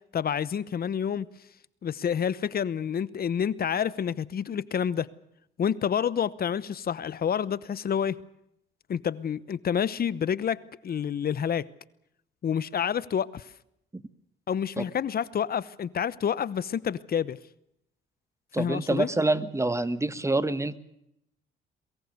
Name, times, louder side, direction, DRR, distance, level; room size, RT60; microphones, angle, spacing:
voice 1, 0.1-1.3 1.8-5.1 5.6-8.2 8.9-11.7 12.4-13.5 14.5-17.4 18.6-19.1, left 8 dB, 50° left, 0.9 m, -28 dB
voice 2, 18.5-20.8, right 2 dB, 15° right, 1.5 m, -26 dB
22.5 x 22.5 x 6.7 m
cardioid pair, 90°, 20 cm